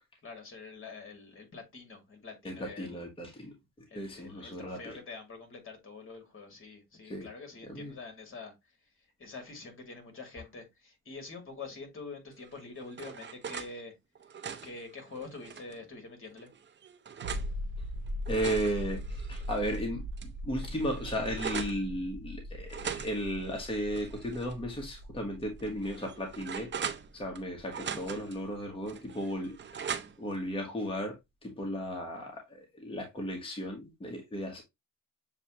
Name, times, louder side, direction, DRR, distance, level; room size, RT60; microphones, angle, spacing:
voice 1, 0.2-3.0 3.9-8.5 9.2-13.9 14.6-16.5, left 4 dB, 45° left, 2.1 m, -46 dB
voice 2, 2.4-3.5 3.9-5.0 7.0-7.3 7.7-7.9 18.3-26.7 27.1-31.2 31.4-34.6, equal, 15° left, 1.3 m, -35 dB
sound 1, 12.4-13.7 14.2-15.8 16.4-17.5 18.1-19.8 20.2-20.3 20.6-21.8 22.7-24.5 24.9-25.0 25.6-27.4 27.7-28.4 28.9-30.4, right 7 dB, 40° right, 0.7 m, -41 dB
sound 2, 17.2-28.6 28.8-28.9, equal, 90° right, 0.8 m, -40 dB
7.1 x 2.4 x 2.9 m
cardioid pair, 90°, 30 cm